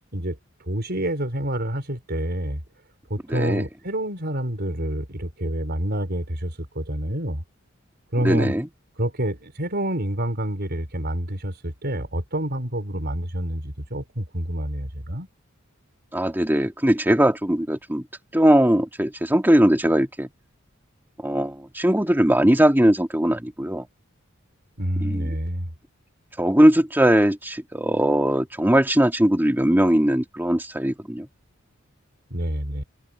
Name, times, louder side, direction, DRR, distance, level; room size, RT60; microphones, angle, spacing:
voice 1, 0.7-2.6 3.1-7.4 8.1-8.6 9.0-15.3 24.8-25.7 32.3-32.8, right 1 dB, 50° right, 4.6 m, -27 dB
voice 2, 3.3-3.6 8.2-8.7 16.1-18.1 18.3-20.3 21.2-23.9 25.0-25.3 26.4-31.3, right 1 dB, 10° right, 2.0 m, -20 dB
head